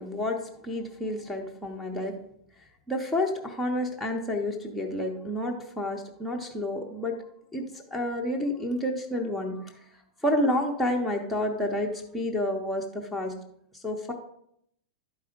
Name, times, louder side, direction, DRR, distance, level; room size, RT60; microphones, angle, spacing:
voice 1, 0.0-2.2 2.9-7.2 7.5-9.7 10.2-13.4 13.8-14.1, left 1 dB, ahead, -2 dB, 0.7 m, -29 dB
11.0 x 4.8 x 5.0 m, 0.72 s
supercardioid pair, 175°, 4 cm